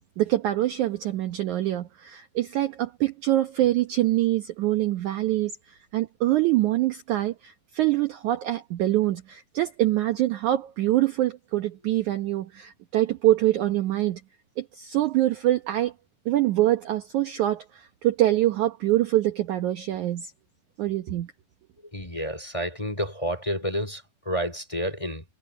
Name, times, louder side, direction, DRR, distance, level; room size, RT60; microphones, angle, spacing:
voice 1, 0.2-14.2 14.6-15.9 16.3-20.3 20.8-21.3, right 14 dB, 65° right, 2.1 m, -25 dB
voice 2, 21.9-25.2, equal, 10° left, 3.8 m, -30 dB
omnidirectional pair, 4.3 m